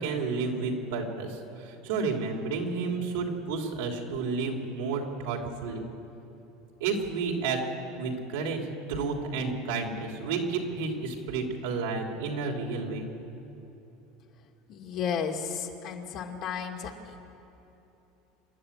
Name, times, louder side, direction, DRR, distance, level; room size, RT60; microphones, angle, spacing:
voice 1, 0.0-5.9 6.8-7.6 7.9-8.6 8.9-13.1, right 4 dB, 80° right, 1 dB, 3.3 m, -31 dB
voice 2, 14.7-17.3, left 7 dB, 55° left, 1 dB, 2.5 m, -34 dB
26.5 x 11.5 x 8.7 m, 3.0 s
supercardioid pair, 110°, 0 cm